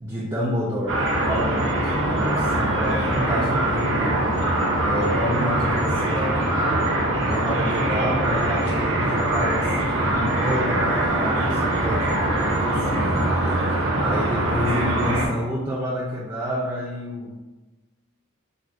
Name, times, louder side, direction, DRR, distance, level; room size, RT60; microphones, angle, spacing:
voice 1, 0.0-4.3 4.8-6.5 7.2-13.3 14.0-17.4, equal, 15° right, -5 dB, 0.3 m, -29 dB
sound 1, 0.9-15.3, right 1 dB, 60° right, 0.6 m, -22 dB
4.5 x 2.0 x 2.4 m, 1.1 s
head